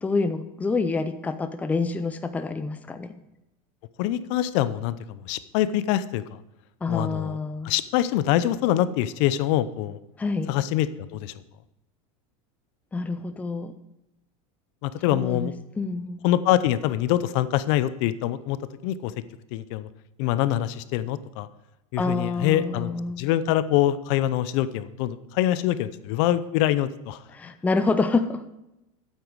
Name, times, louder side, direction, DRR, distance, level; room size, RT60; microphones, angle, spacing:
voice 1, 0.0-3.1 6.8-7.7 10.2-10.5 12.9-13.7 15.1-16.2 22.0-23.2 27.3-28.4, left 3 dB, 10° left, 9 dB, 0.5 m, -27 dB
voice 2, 4.0-6.2 6.9-7.4 7.6-10.0 10.5-11.3 14.8-15.5 16.2-18.6 18.8-19.1 19.5-19.9 20.2-21.5 21.9-22.9 23.2-27.2, left 13 dB, 60° left, 15 dB, 0.6 m, -24 dB
9.0 x 8.2 x 4.7 m, 0.91 s
supercardioid pair, 140°, 18 cm